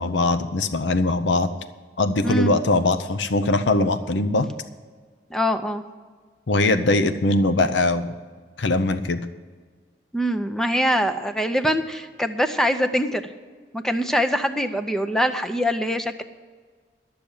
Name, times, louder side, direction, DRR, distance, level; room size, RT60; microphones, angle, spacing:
voice 1, 0.0-1.5 2.0-4.5 6.5-8.1 8.6-9.2, left 2 dB, 85° left, 10 dB, 0.7 m, -21 dB
voice 2, 5.3-5.8 10.1-13.2 13.7-16.2, equal, 5° left, 7 dB, 0.6 m, -23 dB
12.0 x 6.9 x 8.7 m, 1.5 s
head